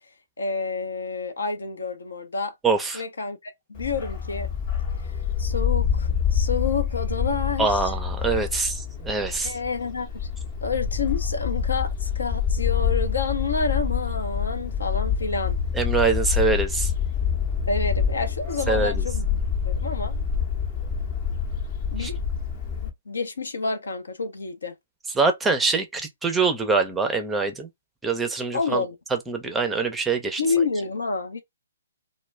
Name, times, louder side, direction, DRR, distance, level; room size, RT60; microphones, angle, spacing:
voice 1, 0.4-2.5 2.9-4.5 5.4-7.8 9.4-10.3 10.6-15.6 17.7-19.4 19.6-20.2 21.9-22.2 22.8-24.7 28.5-28.9 30.4-31.4, left 4 dB, 80° left, 0.6 m, -29 dB
voice 2, 2.6-3.0 7.6-9.6 15.7-16.9 18.7-19.0 22.0-22.1 25.2-27.7 28.0-28.8 29.1-30.4, right 4 dB, 10° right, 0.5 m, -24 dB
Bark, 3.8-22.9, left 7 dB, 35° left, 0.7 m, -26 dB
2.2 x 2.1 x 3.1 m
hypercardioid pair, 135°, 0 cm